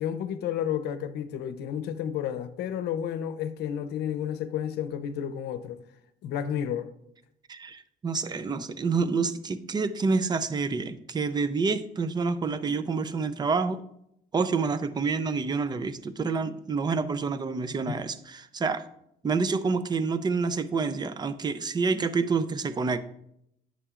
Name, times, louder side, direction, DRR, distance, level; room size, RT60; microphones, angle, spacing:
voice 1, 0.0-5.8 6.2-6.9 17.9-18.0, left 9 dB, 75° left, 0.7 m, -31 dB
voice 2, 7.5-13.8 14.3-18.8 19.2-23.0, right 4 dB, 25° right, 0.6 m, -28 dB
9.9 x 7.5 x 2.5 m
cardioid pair, 110°, 17 cm